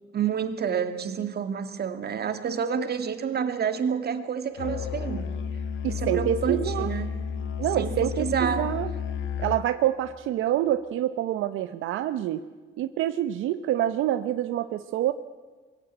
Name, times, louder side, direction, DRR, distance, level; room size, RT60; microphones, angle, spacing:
voice 1, 0.1-5.4 5.9-7.2 7.8-8.7, right 7 dB, 55° right, 9 dB, 2.2 m, -29 dB
Musical instrument, 4.6-9.7, left 7 dB, 75° left, 1.6 m, -32 dB
voice 2, 5.8-6.9 7.6-8.9 9.4-12.4 12.8-15.1, right 12 dB, 90° right, 10 dB, 0.8 m, -27 dB
23.0 x 16.0 x 9.1 m, 1.4 s
cardioid pair, 90°, 20 cm